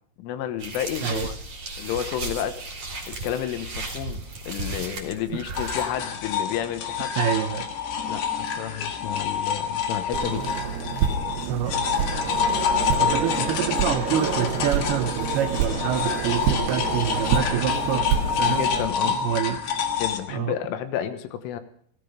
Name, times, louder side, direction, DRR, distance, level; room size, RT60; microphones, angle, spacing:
voice 1, 0.2-1.3 1.8-2.6 3.1-4.2 4.5-7.1 8.1-10.6 18.5-19.2 20.0-21.6, left 10 dB, 80° left, 9 dB, 3.6 m, -31 dB
sound 1, 0.6-5.9, right 2 dB, 35° right, 3.9 m, -35 dB
voice 2, 5.3-5.9 7.2-7.7 11.5-11.8 13.0-18.7 19.0-19.6 20.3-20.6, right 9 dB, 85° right, 7 dB, 2.2 m, -27 dB
sound 2, 5.5-20.2, left 7 dB, 65° left, 3.3 m, -27 dB
sound 3, 10.1-18.9, right 7 dB, 70° right, 2.7 m, -28 dB
16.5 x 15.0 x 5.2 m, 0.63 s
omnidirectional pair, 5.6 m